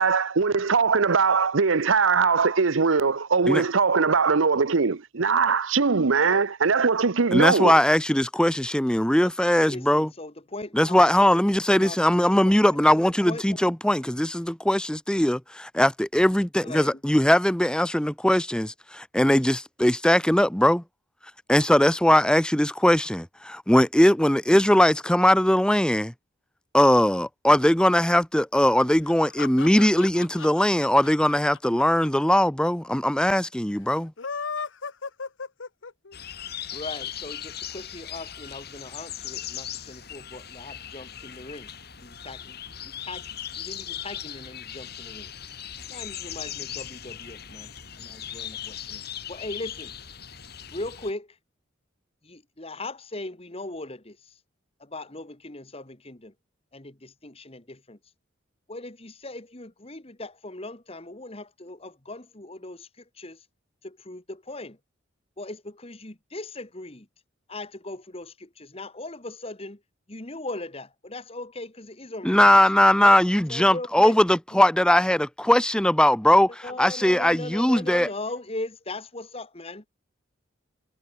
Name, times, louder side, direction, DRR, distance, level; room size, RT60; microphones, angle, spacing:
voice 1, 0.0-7.8, right 5 dB, 85° right, 0.8 m, -21 dB
voice 2, 7.3-10.1 10.7-20.8 21.5-26.1 26.7-34.1 72.2-78.1, left 1 dB, 5° left, 0.8 m, -20 dB
voice 3, 9.7-11.3 11.7-12.0 12.4-12.8 13.2-13.6 16.6-17.0 36.7-41.7 42.0-43.3 43.6-45.3 45.9-47.7 48.0-49.0 49.3-49.9 50.7-51.4 52.2-54.4 54.8-56.3 56.7-58.0 58.7-63.5 63.8-64.8 65.4-67.1 67.5-69.8 70.1-72.6 73.0-73.2 73.5-74.2 74.5-74.6 76.6-79.9, left 2 dB, 30° left, 1.7 m, -39 dB
sound 1, 29.0-32.4 32.6-32.7 32.9-33.0 34.0-36.2, left 5 dB, 75° left, 1.1 m, -35 dB
sound 2, 36.1-51.1, left 10 dB, 55° left, 4.9 m, -38 dB
head